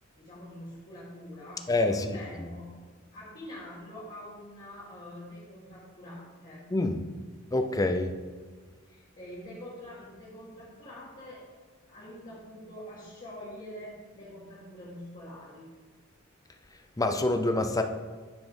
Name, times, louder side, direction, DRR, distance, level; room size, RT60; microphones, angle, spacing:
voice 1, 0.1-2.7 3.1-6.6 8.9-11.4 11.9-15.7, left 1 dB, 40° left, -11 dB, 2.2 m, -45 dB
voice 2, 1.7-2.2 6.7-7.0 7.5-8.1 17.0-17.8, left 2 dB, 15° left, 7 dB, 0.5 m, -26 dB
8.7 x 4.2 x 5.3 m, 1.5 s
head